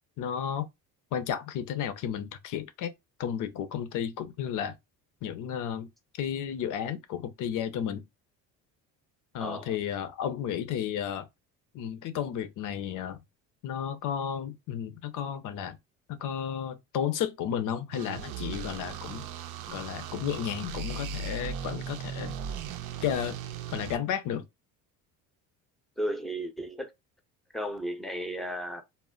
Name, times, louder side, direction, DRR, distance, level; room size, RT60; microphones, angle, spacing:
voice 1, 0.2-0.7 1.1-2.9 3.2-4.7 5.2-5.9 6.2-8.0 9.3-11.3 11.7-13.2 13.6-15.8 16.1-19.3 19.7-22.4 23.0-23.4 23.7-24.4, left 9 dB, 60° left, 0.6 m, -33 dB
voice 2, 9.4-9.8 26.0-26.9 27.5-28.8, equal, ahead, 0.6 m, -34 dB
sound 1, 17.9-24.0, right 7 dB, 60° right, 0.5 m, -37 dB
2.1 x 2.1 x 3.7 m
supercardioid pair, 95°, 36 cm